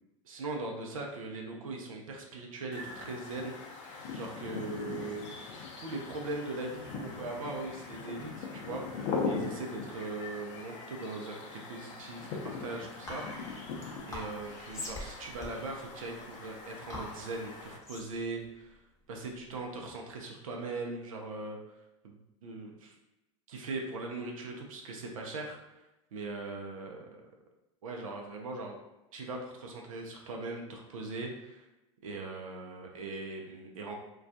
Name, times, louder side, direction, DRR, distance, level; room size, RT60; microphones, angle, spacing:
voice 1, 0.2-3.9 4.1-5.3 5.8-13.5 14.1-18.8 19.1-21.6 22.0-22.9 23.5-25.6 26.1-27.2 27.8-28.8 29.1-31.7 32.0-33.9, right 3 dB, 85° right, 1 dB, 0.5 m, -40 dB
sound 1, 2.7-17.8, left 4 dB, 60° left, 0.5 m, -41 dB
Whispering, 13.1-19.7, left 1 dB, 15° left, 0.7 m, -45 dB
2.3 x 2.2 x 2.6 m, 0.97 s
hypercardioid pair, 90°, 17 cm